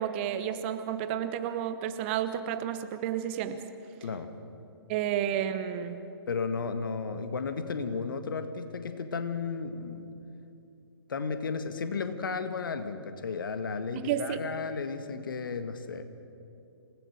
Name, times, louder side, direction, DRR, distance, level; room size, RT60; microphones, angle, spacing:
voice 1, 0.0-3.6 4.9-6.0 14.0-14.4, right 10 dB, 25° right, 10 dB, 1.0 m, -31 dB
voice 2, 4.0-4.3 6.3-10.1 11.1-16.0, left 5 dB, 55° left, 9 dB, 1.8 m, -34 dB
27.5 x 17.5 x 6.6 m, 2.7 s
figure-of-eight pair, 130°, 13 cm